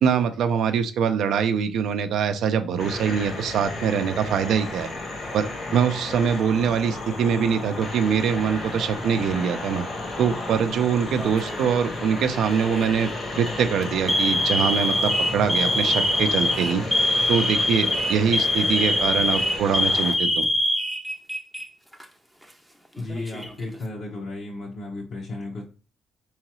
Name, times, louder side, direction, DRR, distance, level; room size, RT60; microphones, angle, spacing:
voice 1, 0.0-4.9 5.3-9.8 10.2-13.1 13.4-16.8 17.3-20.5, right 7 dB, 75° right, 8 dB, 0.5 m, -23 dB
sound 1, 2.8-20.1, left 2 dB, 45° left, 1.2 m, -33 dB
Alarm, 11.2-11.7 12.6-12.9 13.3-13.5 14.1-21.6 21.9-22.0 23.0-23.7, left 1 dB, ahead, 0.6 m, -24 dB
voice 2, 23.0-25.6, left 2 dB, 65° left, -3 dB, 1.2 m, -34 dB
3.8 x 3.1 x 3.0 m, 0.37 s
cardioid pair, 90°, 0 cm